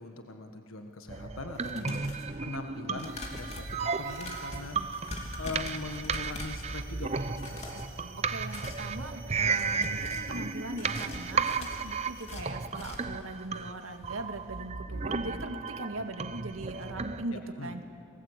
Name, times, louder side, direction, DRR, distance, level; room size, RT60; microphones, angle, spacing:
voice 1, 0.0-2.0 2.4-4.8 5.4-8.0 17.3-17.7, left 3 dB, 80° left, 5 dB, 1.5 m, -41 dB
sound 1, 1.1-17.2, right 5 dB, 30° right, 0.7 m, -34 dB
sound 2, 1.5-2.3 2.9-6.7 7.3-7.9 8.3-8.9 9.4-10.3 10.7-13.2 13.6-13.7 14.0-14.1, left 1 dB, 30° left, 3.0 m, -42 dB
sound 3, 3.0-12.6, right 5 dB, 60° right, 4.2 m, -53 dB
voice 2, 8.2-17.8, right 2 dB, 85° right, 6 dB, 2.0 m, -40 dB
29.5 x 20.0 x 8.3 m, 2.5 s
head